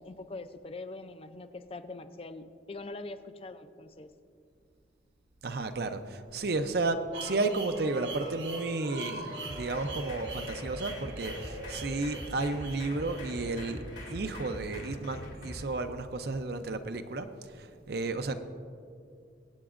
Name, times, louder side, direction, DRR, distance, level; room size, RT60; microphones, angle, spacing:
voice 1, 0.0-4.1, left 2 dB, 30° left, 10 dB, 0.4 m, -43 dB
voice 2, 5.4-13.8 14.1-18.3, right 3 dB, 55° right, 9 dB, 0.5 m, -33 dB
sound 1, 7.1-15.0, right 2 dB, 75° right, 1.3 m, -42 dB
sound 2, 9.4-15.6, left 1 dB, 80° left, 2.7 m, -43 dB
23.0 x 8.7 x 2.5 m, 2.4 s
head